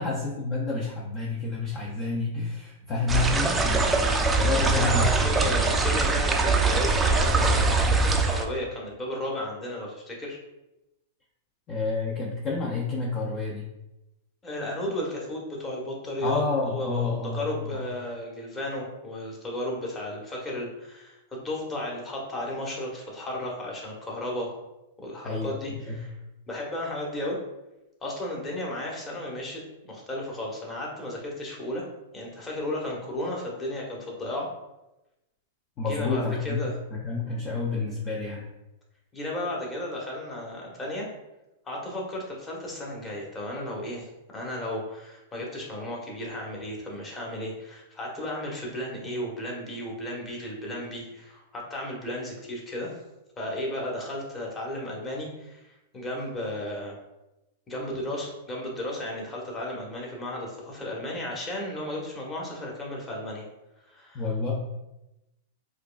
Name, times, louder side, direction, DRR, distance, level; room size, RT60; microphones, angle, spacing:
voice 1, 0.0-4.0 4.4-5.8 11.7-13.7 16.2-17.9 25.2-26.0 35.8-36.6 36.9-38.4 64.1-64.5, left 3 dB, 35° left, -2 dB, 0.6 m, -29 dB
sound 1, 3.1-8.4, right 3 dB, 15° right, 0.4 m, -23 dB
voice 2, 4.5-10.4 14.4-24.5 25.0-26.1 26.5-27.4 28.0-31.9 32.1-34.5 35.8-36.7 39.1-41.1 41.6-53.0 53.4-55.6 55.9-56.9 57.7-63.4 63.9-64.2, left 1 dB, 20° left, -2 dB, 1.1 m, -34 dB
4.5 x 2.4 x 2.3 m, 0.96 s
hypercardioid pair, 125°, 0 cm